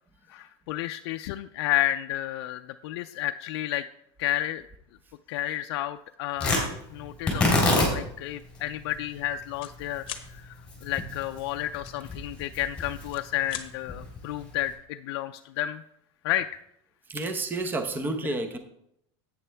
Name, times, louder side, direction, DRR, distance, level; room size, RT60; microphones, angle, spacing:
voice 1, 0.3-3.8 4.2-4.6 5.3-10.5 10.8-15.8 16.2-16.6, left 13 dB, 80° left, 8 dB, 0.4 m, -31 dB
Tearing, 6.4-14.7, left 2 dB, 10° left, 3.6 m, -30 dB
sound 1, 8.4-8.6 8.8-9.7 10.0-10.3 11.9-12.6 13.0-13.7, left 11 dB, 40° left, 1.0 m, -41 dB
voice 2, 17.1-18.6, right 2 dB, 15° right, 7 dB, 0.8 m, -30 dB
11.0 x 8.5 x 3.4 m, 0.76 s
supercardioid pair, 150°, 13 cm